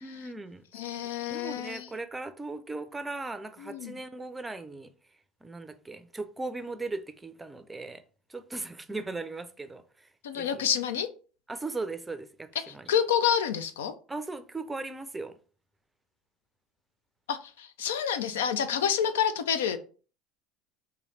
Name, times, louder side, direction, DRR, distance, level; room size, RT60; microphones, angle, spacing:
voice 1, 0.0-0.6 1.3-4.9 5.4-8.0 8.3-10.1 10.3-10.7 11.5-13.0 14.1-15.3, right 3 dB, 15° right, 0.5 m, -38 dB
voice 2, 0.7-1.9 3.6-3.9 10.2-11.1 12.7-13.9 17.3-19.8, left 8 dB, 75° left, 0.4 m, -28 dB
3.1 x 2.8 x 3.9 m
hypercardioid pair, 70°, 0 cm